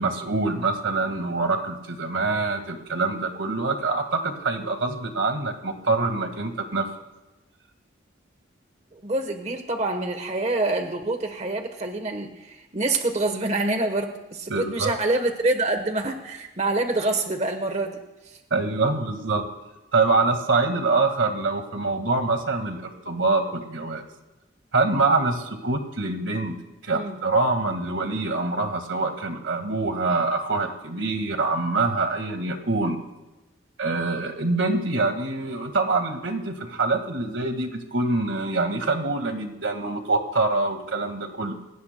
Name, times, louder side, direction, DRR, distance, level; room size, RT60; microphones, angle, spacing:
voice 1, 0.0-6.9 14.5-14.9 18.5-19.5 19.9-24.0 24.7-26.5 26.8-33.0 33.8-41.5, right 3 dB, 80° right, 6 dB, 1.8 m, -25 dB
voice 2, 8.9-18.0 26.9-27.2, right 2 dB, 35° right, 6 dB, 1.1 m, -26 dB
29.5 x 17.0 x 2.2 m, 1.0 s
head